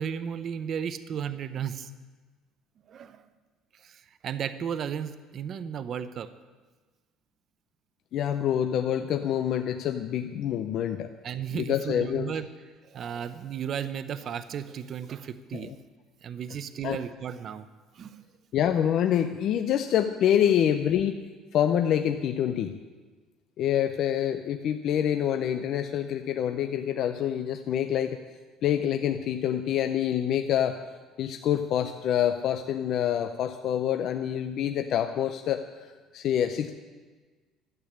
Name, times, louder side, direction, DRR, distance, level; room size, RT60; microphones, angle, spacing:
voice 1, 0.0-1.9 2.9-3.2 3.8-6.3 11.2-12.5 12.9-15.7 16.2-17.7 18.0-18.2, right 8 dB, 35° right, 13 dB, 0.6 m, -34 dB
voice 2, 8.1-11.1 11.5-12.4 15.5-15.7 16.8-17.0 18.5-21.2 21.5-22.7 23.6-28.2 28.6-30.8 31.2-36.7, left 10 dB, 45° left, 7 dB, 0.6 m, -26 dB
12.0 x 8.6 x 9.8 m, 1.3 s
cardioid pair, 175°, 0 cm